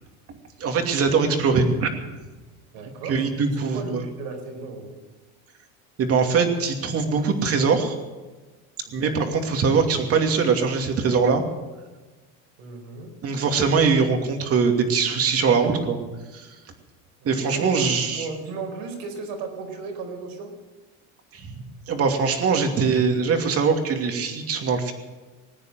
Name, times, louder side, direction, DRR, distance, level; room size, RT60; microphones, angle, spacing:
voice 1, 0.6-1.9 3.1-4.0 6.0-8.0 8.9-11.4 13.2-16.0 16.3-16.5 17.2-18.3 21.3-24.9, right 5 dB, 35° right, 4 dB, 2.7 m, -22 dB
voice 2, 2.7-5.0 8.8-9.4 12.6-13.1 17.2-20.5, right 4 dB, 65° right, 4 dB, 4.9 m, -36 dB
20.0 x 9.4 x 7.7 m, 1.2 s
supercardioid pair, 120°, 39 cm